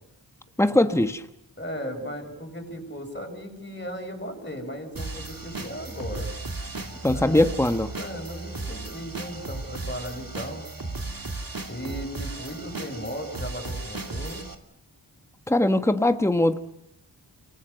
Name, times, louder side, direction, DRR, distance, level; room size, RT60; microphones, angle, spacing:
voice 1, 0.6-1.2 7.0-7.9 15.5-16.6, left 1 dB, 5° left, 8 dB, 1.4 m, -21 dB
voice 2, 1.6-6.3 7.1-7.4 7.9-10.7 11.7-14.5, equal, 25° left, 3 dB, 6.5 m, -36 dB
sound 1, 5.0-14.6, right 2 dB, 50° right, 2.5 m, -35 dB
28.0 x 19.0 x 6.7 m, 0.77 s
wide cardioid pair, 45°, 44 cm